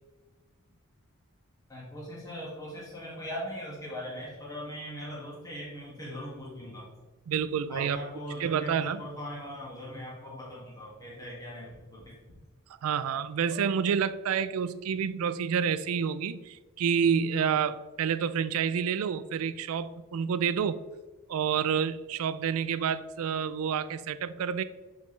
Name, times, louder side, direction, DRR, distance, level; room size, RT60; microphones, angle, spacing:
voice 1, 1.7-6.9 7.7-12.2, equal, 15° left, -5 dB, 2.0 m, -40 dB
voice 2, 7.3-8.0 8.4-9.1 12.8-20.8 21.3-24.6, right 7 dB, 75° right, 14 dB, 0.3 m, -29 dB
sound 1, 11.7-12.4 12.9-13.0 13.4-13.7 14.5-14.6 14.8-14.9, right 1 dB, 60° left, 2.1 m, -49 dB
6.4 x 5.1 x 3.2 m, 1.2 s
head